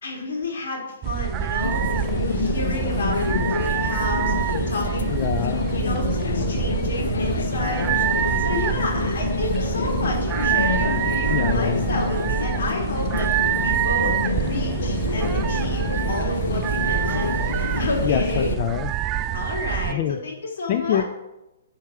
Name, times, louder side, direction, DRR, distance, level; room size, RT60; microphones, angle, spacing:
voice 1, 0.0-5.2 5.7-7.9 8.1-13.3 13.6-18.5 19.3-21.0, left 2 dB, 75° left, 0 dB, 2.9 m, -31 dB
sound 1, 1.0-19.9, right 11 dB, 25° right, 0.3 m, -26 dB
sound 2, 1.6-18.6, left 5 dB, 90° left, 0.6 m, -27 dB
voice 2, 5.1-5.8 11.3-11.9 18.0-18.9 19.9-20.2 20.7-21.1, left 10 dB, 40° left, 7 dB, 0.4 m, -25 dB
10.5 x 4.5 x 4.8 m, 0.95 s
hypercardioid pair, 150°, 0 cm